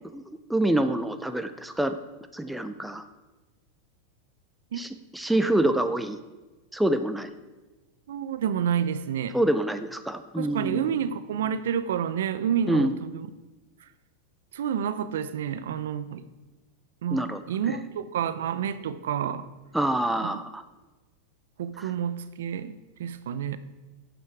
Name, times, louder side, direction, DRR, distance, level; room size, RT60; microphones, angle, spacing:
voice 1, 0.5-2.0 2.3-3.0 4.8-6.2 6.7-7.3 9.3-10.9 12.7-12.9 17.1-17.4 19.7-20.6 21.8-21.9, right 1 dB, 5° right, 9 dB, 0.5 m, -26 dB
voice 2, 8.1-9.4 10.4-13.3 13.8-13.9 14.5-16.2 17.0-17.2 17.5-19.5 20.2-20.4 21.6-23.6, right 8 dB, 90° right, 13 dB, 0.6 m, -29 dB
15.0 x 7.0 x 4.8 m, 1.2 s
supercardioid pair, 150°, 0 cm